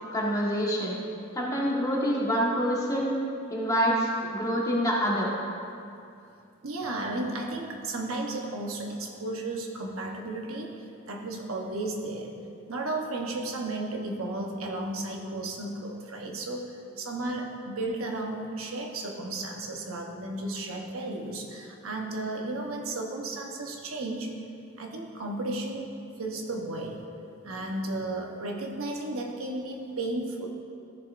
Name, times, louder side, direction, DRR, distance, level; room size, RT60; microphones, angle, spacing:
voice 1, 0.1-1.0 1.3-3.2 3.5-5.3, equal, 15° left, -5 dB, 1.5 m, -26 dB
voice 2, 6.6-12.3 12.7-16.7 17.0-24.3 24.8-25.9 26.2-27.0 27.4-30.5, right 2 dB, 80° right, 1 dB, 1.0 m, -34 dB
14.0 x 7.0 x 2.5 m, 2.5 s
head